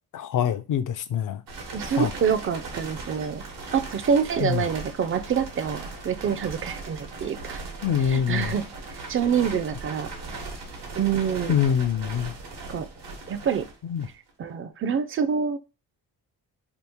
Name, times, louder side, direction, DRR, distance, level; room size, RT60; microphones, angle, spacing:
voice 1, 0.1-1.4 2.0-2.1 4.4-4.6 7.8-8.5 11.5-12.3 13.9-14.1, left 8 dB, 55° left, 0.5 m, -24 dB
sound 1, 1.5-14.3, right 3 dB, 90° right, 1.1 m, -38 dB
voice 2, 1.7-3.5 3.7-7.6 8.0-8.6 9.1-10.1 10.9-11.5 12.7-12.9 13.3-13.7 14.4-15.6, right 7 dB, 35° right, 0.4 m, -26 dB
2.9 x 2.4 x 3.5 m
cardioid pair, 85°, 39 cm